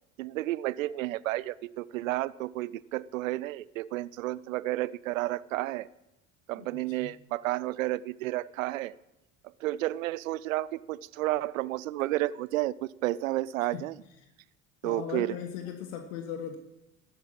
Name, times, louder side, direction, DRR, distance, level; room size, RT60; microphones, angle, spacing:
voice 1, 0.2-5.9 6.5-8.9 9.6-14.0 14.8-15.4, right 16 dB, 80° right, 21 dB, 0.5 m, -31 dB
voice 2, 6.6-7.1 13.7-13.8 14.8-16.6, left 8 dB, 70° left, 5 dB, 1.4 m, -38 dB
13.5 x 8.7 x 7.5 m, 0.93 s
hypercardioid pair, 65°, 39 cm